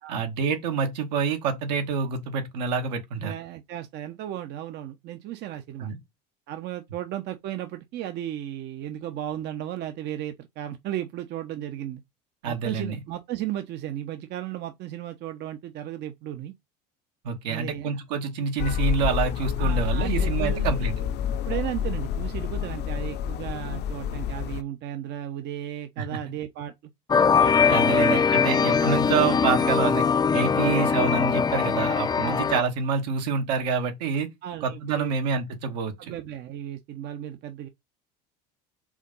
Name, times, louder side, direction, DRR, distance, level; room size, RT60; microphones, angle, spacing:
voice 1, 0.1-3.3 5.8-6.0 12.4-13.0 17.2-20.9 26.0-26.1 27.7-30.0 30.3-34.3 34.6-36.1, right 5 dB, 80° right, 2.1 m, -27 dB
voice 2, 3.2-5.9 6.5-12.0 12.4-16.5 17.5-18.0 19.6-20.8 21.3-26.7 27.4-28.5 30.5-30.7 32.2-32.4 34.4-35.2 36.0-37.7, right 12 dB, 55° right, 0.9 m, -35 dB
sound 1, 18.6-24.6, left 8 dB, 50° left, 0.7 m, -28 dB
sound 2, 27.1-32.6, left 6 dB, 20° left, 0.5 m, -21 dB
5.0 x 3.8 x 5.4 m
hypercardioid pair, 85°, 21 cm